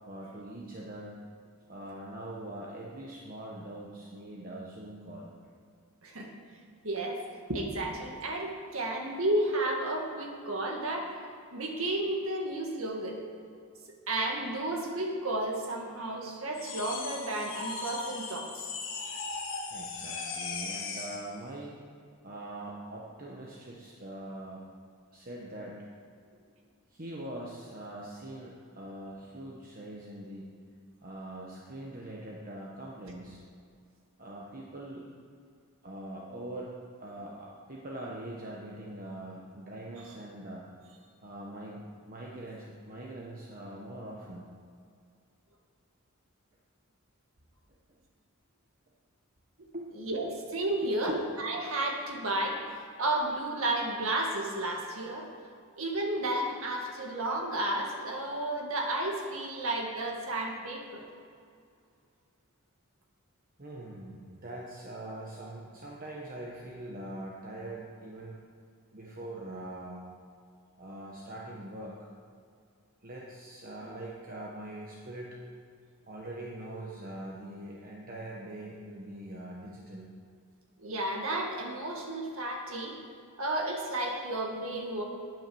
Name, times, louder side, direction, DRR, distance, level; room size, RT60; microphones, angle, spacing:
voice 1, 0.1-1.2 1.7-5.3 19.7-21.8 22.2-24.6 25.1-25.9 26.9-30.5 31.0-33.4 34.2-35.0 35.8-40.7 41.2-44.5 49.7-49.9 50.2-50.3 50.8-51.2 63.6-68.4 68.9-70.1 70.8-72.1 73.0-75.4 76.1-80.1, right 1 dB, 40° right, -3 dB, 1.2 m, -42 dB
voice 2, 6.8-7.2 7.5-11.2 11.5-13.2 14.1-18.7 50.0-51.1 51.4-55.3 55.8-61.1 80.8-83.0 83.4-85.0, right 1 dB, 70° right, 1 dB, 1.9 m, -32 dB
sound 1, 16.5-21.3, left 4 dB, 60° left, 1.6 m, -38 dB
9.1 x 8.9 x 7.0 m, 2.3 s
head